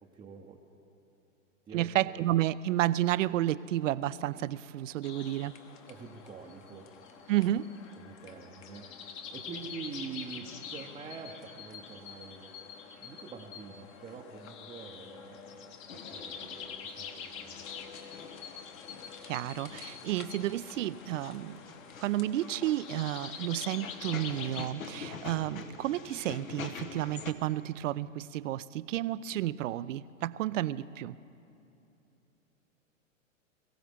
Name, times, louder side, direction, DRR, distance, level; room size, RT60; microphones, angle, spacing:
voice 1, 0.1-0.6 1.7-2.0 5.9-7.3 7.9-17.7, right 5 dB, 10° right, -1 dB, 0.7 m, -46 dB
voice 2, 1.7-5.5 7.3-7.7 19.2-21.6 22.0-31.1, right 13 dB, 65° right, 17 dB, 0.5 m, -31 dB
sound 1, 5.0-24.7, left 6 dB, 30° left, 1.1 m, -46 dB
sound 2, 15.9-27.3, left 6 dB, 80° left, 1.3 m, -47 dB
22.5 x 15.0 x 3.5 m, 2.9 s
hypercardioid pair, 120°, 40 cm